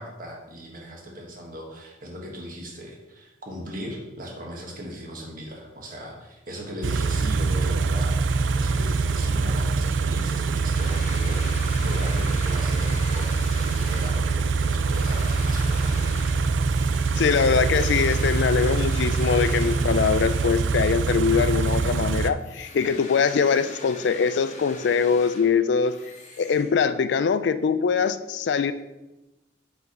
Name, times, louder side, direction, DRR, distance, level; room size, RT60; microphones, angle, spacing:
voice 1, 0.0-11.4 11.8-16.1, equal, 50° right, 0 dB, 1.6 m, -38 dB
Car / Idling, 6.8-22.3, right 4 dB, 80° right, 0.4 m, -24 dB
sound 1, 10.7-20.7 21.1-27.1, left 2 dB, 40° left, 1.2 m, -42 dB
voice 2, 17.1-25.9 26.4-28.7, left 6 dB, 65° left, 13 dB, 0.3 m, -22 dB
5.8 x 4.6 x 5.3 m, 1.0 s
head